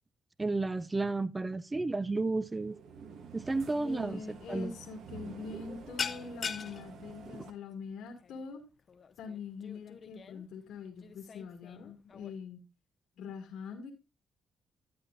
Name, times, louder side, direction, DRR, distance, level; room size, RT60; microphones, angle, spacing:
voice 1, 0.4-2.8 3.3-4.7 7.3-7.4, right 3 dB, 20° right, 0.4 m, -32 dB
sound 1, 2.5-7.5, right 6 dB, 75° right, 1.2 m, -49 dB
voice 2, 3.8-8.6 9.2-12.6 13.2-13.9, left 5 dB, 80° left, 1.9 m, -44 dB
sound 2, 4.4-4.6 4.9-5.2 5.5-12.4, left 6 dB, 45° left, 0.6 m, -42 dB
12.0 x 8.6 x 2.5 m
cardioid pair, 90°, 0 cm